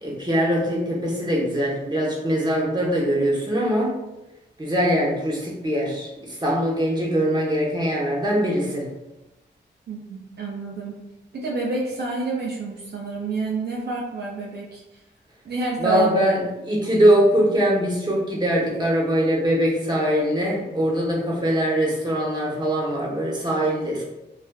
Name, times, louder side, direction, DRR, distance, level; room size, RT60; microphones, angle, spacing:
voice 1, 0.0-3.9 4.6-8.8 15.8-16.4 16.7-24.0, equal, 20° right, -4 dB, 0.9 m, -22 dB
voice 2, 9.9-11.0 11.3-15.0 15.4-16.4, right 3 dB, 60° right, -3 dB, 0.5 m, -28 dB
2.4 x 2.3 x 2.2 m, 0.96 s
cardioid pair, 40°, 19 cm